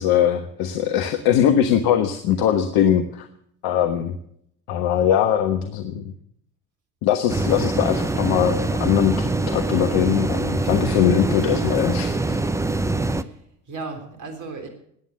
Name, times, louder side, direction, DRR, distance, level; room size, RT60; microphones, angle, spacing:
voice 1, 0.0-3.3 3.6-4.2 4.7-6.1 7.0-12.4, left 9 dB, 55° left, 6 dB, 1.3 m, -21 dB
sound 1, 7.3-13.2, right 2 dB, 5° right, 0.7 m, -24 dB
voice 2, 12.9-14.7, right 3 dB, 40° right, 5 dB, 3.6 m, -36 dB
18.5 x 9.5 x 7.0 m, 0.71 s
figure-of-eight pair, 60°, 46 cm